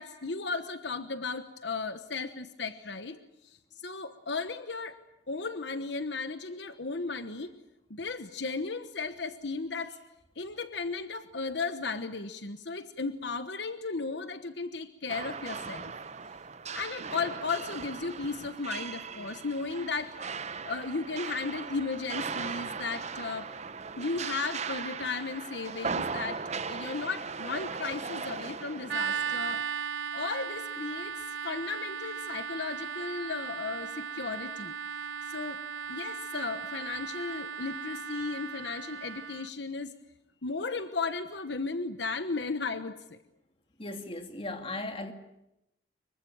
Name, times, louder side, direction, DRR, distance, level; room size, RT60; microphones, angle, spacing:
voice 1, 0.0-3.2 3.4-3.6 3.8-5.0 5.3-7.5 7.9-10.0 10.4-15.9 16.7-20.1 20.6-23.5 24.0-26.4 26.7-29.6 30.1-31.2 31.4-34.8 35.3-35.6 35.9-39.9 40.4-43.2, left 4 dB, 70° left, 10 dB, 1.2 m, -35 dB
sound 1, 15.1-29.6, right 5 dB, 35° right, 0.9 m, -38 dB
sound 2, 28.9-39.5, right 7 dB, 85° right, 1.0 m, -37 dB
voice 2, 43.8-45.1, left 2 dB, 30° left, 6 dB, 2.5 m, -37 dB
25.5 x 23.0 x 8.9 m, 0.87 s
head